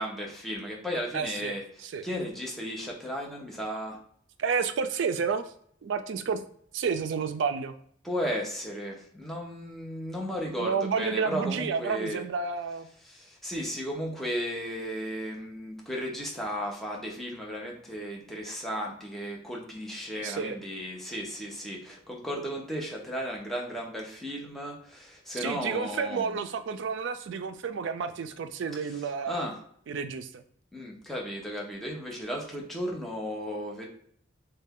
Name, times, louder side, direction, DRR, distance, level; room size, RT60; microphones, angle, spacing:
voice 1, 0.0-1.6 2.0-4.0 8.0-12.2 13.0-26.4 29.3-29.6 30.7-33.9, equal, ahead, -2 dB, 0.7 m, -35 dB
voice 2, 1.1-2.1 4.4-5.4 5.8-6.4 6.7-7.7 10.6-12.9 20.2-20.6 25.4-29.5 29.9-30.4, right 5 dB, 65° right, 9 dB, 0.3 m, -30 dB
3.2 x 2.2 x 3.5 m, 0.64 s
head